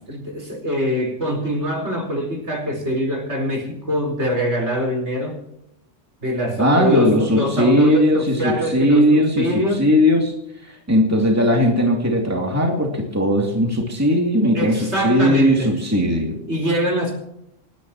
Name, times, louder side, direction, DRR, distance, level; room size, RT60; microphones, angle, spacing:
voice 1, 0.1-5.4 6.2-9.9 14.5-15.7 16.5-17.2, equal, 65° right, 1 dB, 4.9 m, -23 dB
voice 2, 6.6-10.3 10.6-16.4, equal, 10° right, 0 dB, 2.7 m, -18 dB
29.0 x 10.5 x 3.1 m, 0.80 s
omnidirectional pair, 1.3 m